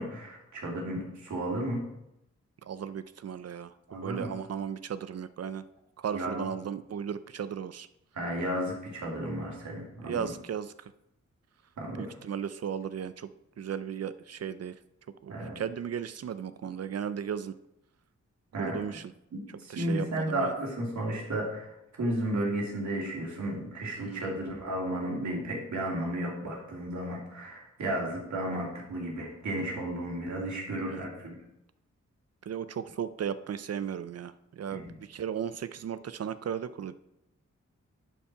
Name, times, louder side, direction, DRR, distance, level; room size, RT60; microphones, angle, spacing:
voice 1, 0.0-1.8 3.9-4.3 6.1-6.5 8.1-10.2 11.8-12.0 15.3-15.6 18.5-18.8 19.3-31.3 34.7-34.9, right 1 dB, 75° right, -2 dB, 2.7 m, -33 dB
voice 2, 2.6-3.7 4.0-5.6 6.0-7.9 10.0-10.9 12.0-13.3 13.6-14.7 15.2-17.6 18.6-19.1 19.7-20.5 24.0-24.3 30.8-31.1 32.5-37.0, right 8 dB, 60° right, 14 dB, 0.5 m, -36 dB
10.5 x 4.5 x 4.8 m, 0.84 s
cardioid pair, 65°, 29 cm